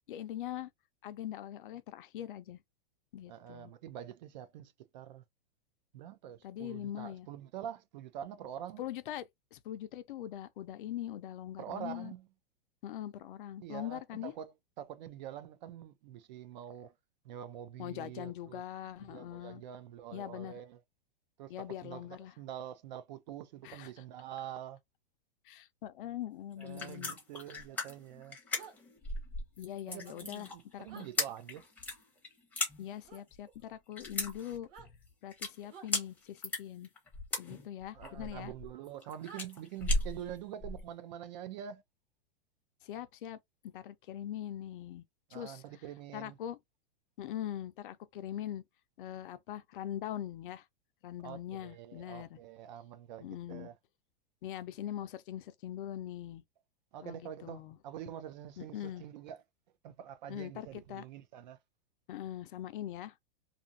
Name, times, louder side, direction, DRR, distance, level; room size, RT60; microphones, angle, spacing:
voice 1, 0.1-0.7 1.0-2.6 3.1-3.7 6.4-7.3 8.8-9.2 9.5-12.1 12.8-14.3 17.8-19.6 20.1-20.6 21.5-22.3 23.6-23.9 25.5-27.1 29.6-31.1 32.8-34.7 35.2-36.9 37.4-38.5 42.8-43.4 43.7-45.0 45.3-45.6 46.1-46.6 47.2-48.6 49.0-50.6 51.0-52.4 53.2-53.7 54.4-56.4 57.0-57.8 58.6-59.0 60.3-61.0 62.1-63.1, left 11 dB, 60° left, 0.5 m, -42 dB
voice 2, 3.3-5.2 5.9-8.8 11.6-12.3 13.6-16.9 17.2-18.6 19.0-20.8 21.4-24.8 26.6-28.4 29.9-31.6 37.9-41.8 45.3-46.4 51.2-53.8 56.9-59.4 59.8-61.6, right 10 dB, 50° right, 0.5 m, -46 dB
sound 1, 26.5-40.9, left 2 dB, 5° left, 0.7 m, -37 dB
sound 2, 28.5-28.8 30.9-31.1 33.0-33.2 34.6-34.9 35.7-35.9 38.0-38.1 39.2-39.5, right 6 dB, 35° right, 1.2 m, -51 dB
2.6 x 2.5 x 2.5 m
supercardioid pair, 155°, 29 cm